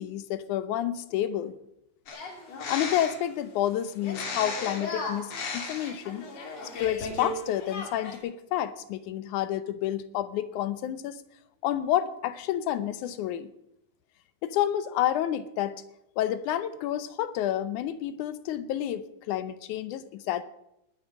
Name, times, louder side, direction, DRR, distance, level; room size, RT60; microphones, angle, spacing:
voice 1, 0.0-1.5 2.7-6.3 6.8-11.2 11.6-13.5 14.4-15.8 16.2-20.4, left 11 dB, 80° left, 14 dB, 2.1 m, -29 dB
sound 1, 2.1-3.3 4.0-7.3 7.6-8.2, left 3 dB, 55° left, 3.3 m, -35 dB
19.5 x 8.5 x 6.2 m, 0.84 s
omnidirectional pair, 3.6 m